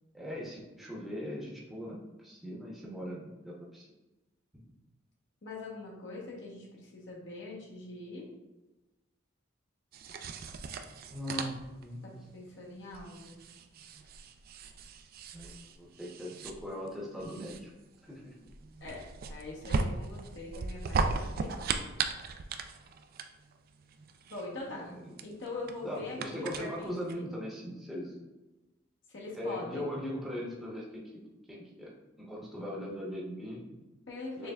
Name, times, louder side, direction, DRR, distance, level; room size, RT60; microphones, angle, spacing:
voice 1, 0.1-3.9 11.1-12.1 15.3-17.7 18.0-18.3 24.5-25.3 25.8-28.2 29.3-31.2 31.5-33.9 34.4-34.5, equal, ahead, -5 dB, 0.8 m, -40 dB
voice 2, 5.4-8.3 12.0-13.4 18.8-19.0 19.3-21.5 24.3-24.9 25.2-27.3 29.1-29.9 34.1-34.5, left 2 dB, 60° left, -3 dB, 1.0 m, -43 dB
sound 1, 9.9-27.1, right 4 dB, 50° right, 0.3 m, -37 dB
6.6 x 3.3 x 2.3 m, 1.1 s
head